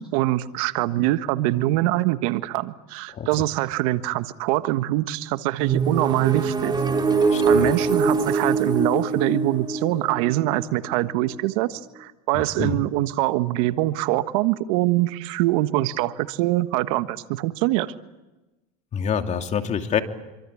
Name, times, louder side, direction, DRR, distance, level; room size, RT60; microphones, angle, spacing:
voice 1, 0.0-6.7 7.5-17.9, right 16 dB, 70° right, 11 dB, 1.5 m, -24 dB
sound 1, 5.6-11.4, right 4 dB, 20° right, 3.8 m, -23 dB
voice 2, 7.3-7.7 12.6-12.8 18.9-20.0, left 7 dB, 35° left, 6 dB, 2.8 m, -26 dB
27.0 x 25.5 x 8.6 m, 1.1 s
hypercardioid pair, 100°, 19 cm